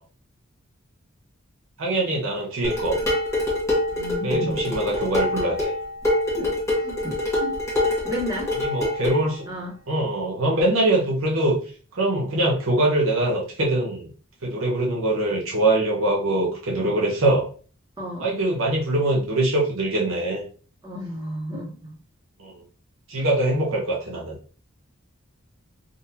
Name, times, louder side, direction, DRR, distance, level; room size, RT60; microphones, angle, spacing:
voice 1, 1.8-3.0 4.2-5.7 8.6-9.4 9.9-11.6 11.9-14.1 14.4-17.5 18.2-20.4 22.4-22.6 23.1-24.3, right 1 dB, 70° right, -2 dB, 0.8 m, -23 dB
Dishes pots and pans, 2.6-9.2, left 1 dB, 15° left, 1.1 m, -25 dB
voice 2, 3.9-4.6 6.4-6.5 6.8-8.5 9.5-9.8 18.0-18.3 20.8-21.8 23.2-23.3, equal, 20° right, -5 dB, 1.1 m, -32 dB
3.8 x 2.6 x 2.8 m, 0.41 s
head